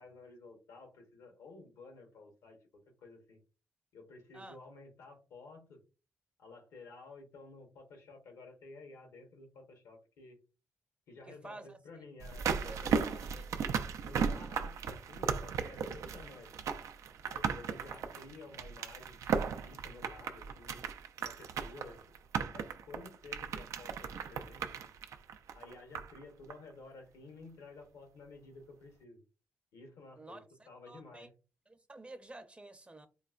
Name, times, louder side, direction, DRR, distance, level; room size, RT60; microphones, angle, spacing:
voice 1, 0.0-3.4 3.9-5.8 6.4-10.4 11.1-13.5 14.0-16.5 17.2-20.9 21.2-24.8 25.5-29.2 29.7-31.3, left 3 dB, 90° left, 1.0 m, -53 dB
voice 2, 11.3-11.8 12.7-13.5 30.2-31.3 31.7-33.1, right 2 dB, 20° right, 0.6 m, -51 dB
sound 1, 12.2-26.2 26.5-26.6, right 6 dB, 75° right, 0.3 m, -36 dB
3.8 x 2.1 x 2.4 m
cardioid pair, 60°, 5 cm